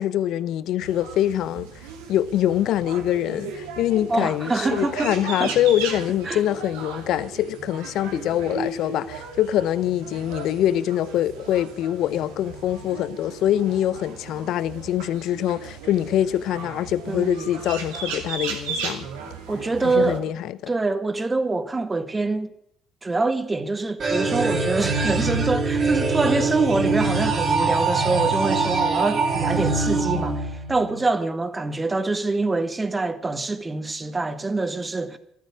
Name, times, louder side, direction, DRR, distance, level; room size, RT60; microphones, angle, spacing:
voice 1, 0.0-19.1 19.8-20.7, left 12 dB, 65° left, 0.8 m, -24 dB
sound 1, 0.8-20.2, right 5 dB, 80° right, 2.7 m, -36 dB
voice 2, 4.1-5.1 5.4-5.5 6.3-6.4 17.1-17.5 19.5-20.3 20.7-22.5 23.0-35.2, right 3 dB, 20° right, 1.9 m, -25 dB
sound 2, 24.0-31.0, right 3 dB, 45° right, 3.5 m, -23 dB
14.0 x 13.0 x 6.3 m
hypercardioid pair, 60°, 0 cm